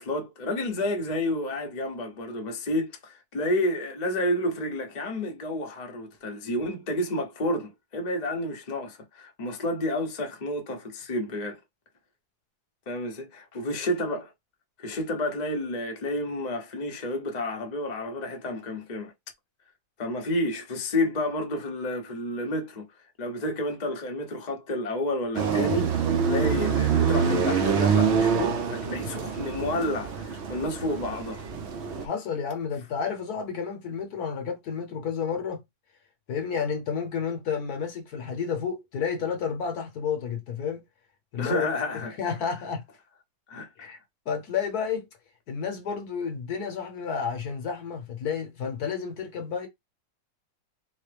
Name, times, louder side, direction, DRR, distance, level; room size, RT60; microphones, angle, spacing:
voice 1, 0.0-11.6 12.9-14.3 14.8-19.1 20.0-22.9 23.2-31.4 41.4-42.1 43.5-43.9, left 1 dB, 35° left, 0.7 m, -30 dB
sound 1, 25.3-32.1, right 6 dB, 60° right, 0.7 m, -25 dB
voice 2, 32.0-35.6 36.3-40.8 41.3-41.7 42.2-42.8 43.8-44.0 44.3-45.1 45.5-49.7, left 6 dB, 65° left, 1.3 m, -31 dB
4.1 x 2.1 x 3.3 m
omnidirectional pair, 1.9 m